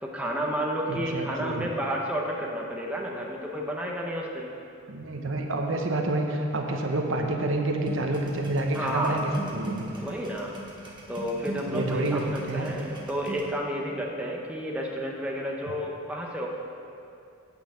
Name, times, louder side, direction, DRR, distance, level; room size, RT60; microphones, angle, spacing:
voice 1, 0.0-4.5 8.7-9.3 9.9-10.6 11.1-16.5, equal, 5° right, -2 dB, 0.8 m, -31 dB
voice 2, 0.9-1.7 4.9-9.9 11.6-12.8, right 2 dB, 60° right, 2 dB, 0.9 m, -28 dB
sound 1, 7.8-13.5, right 2 dB, 20° right, 1.3 m, -39 dB
9.0 x 5.8 x 7.3 m, 2.6 s
head